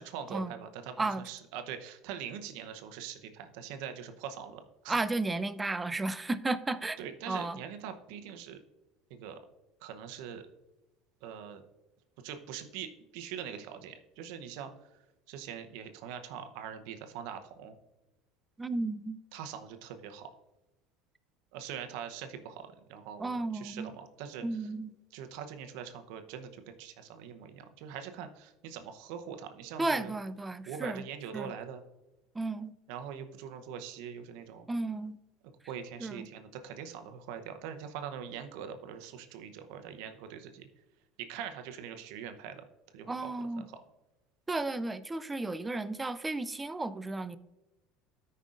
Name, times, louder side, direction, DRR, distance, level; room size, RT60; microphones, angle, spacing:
voice 1, 0.0-5.0 7.0-8.6 9.1-9.4 9.8-10.4 11.2-11.6 12.2-14.7 15.3-17.8 19.3-20.3 21.5-24.4 25.1-30.1 30.7-31.8 32.9-34.7 35.7-40.7 41.2-42.6 42.9-43.3 43.6-43.7, right 8 dB, 75° right, 8 dB, 0.8 m, -43 dB
voice 2, 4.9-7.0 7.3-7.6 18.6-19.2 23.2-23.9 24.4-24.9 29.8-31.0 31.3-31.5 32.3-32.7 34.7-35.2 36.0-36.3 43.1-43.7 44.5-47.4, right 2 dB, 15° right, 14 dB, 0.5 m, -33 dB
13.5 x 5.5 x 2.5 m, 0.98 s
hypercardioid pair, 85°, 0 cm